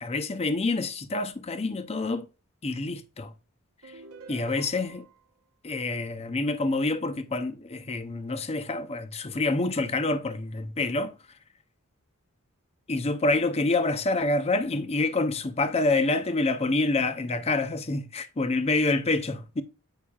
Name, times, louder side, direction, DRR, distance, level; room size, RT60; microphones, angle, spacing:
voice 1, 0.0-2.3 2.6-3.3 3.8-3.9 4.3-5.1 5.6-11.1 12.9-19.6, left 2 dB, 30° left, 0.6 m, -27 dB
sound 1, 3.8-5.3, right 3 dB, 75° right, 1.0 m, -48 dB
8.5 x 5.5 x 2.3 m
head